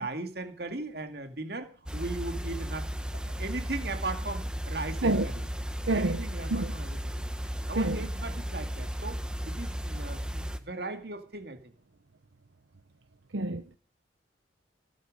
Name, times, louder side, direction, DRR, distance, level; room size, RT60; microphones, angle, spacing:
voice 1, 0.0-5.5 5.9-7.3 7.7-11.6, right 2 dB, 55° right, 2.3 m, -38 dB
sound 1, 1.9-10.6, equal, 5° right, 1.1 m, -35 dB
voice 2, 5.9-6.2 6.5-6.7 7.8-8.0 13.3-13.8, right 2 dB, 80° right, 0.9 m, -27 dB
17.0 x 12.0 x 5.2 m
head